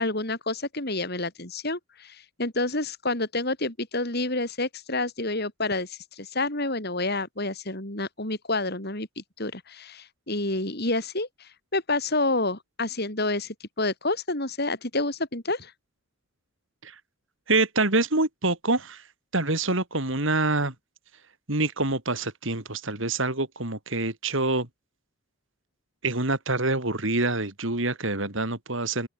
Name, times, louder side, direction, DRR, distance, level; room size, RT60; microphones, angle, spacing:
voice 1, 0.0-9.1 9.4-15.7, left 2 dB, 50° left, 5.2 m, -29 dB
voice 2, 17.5-19.0 19.3-20.7 21.5-24.7 26.0-29.1, right 2 dB, 60° right, 3.4 m, -26 dB
open air
head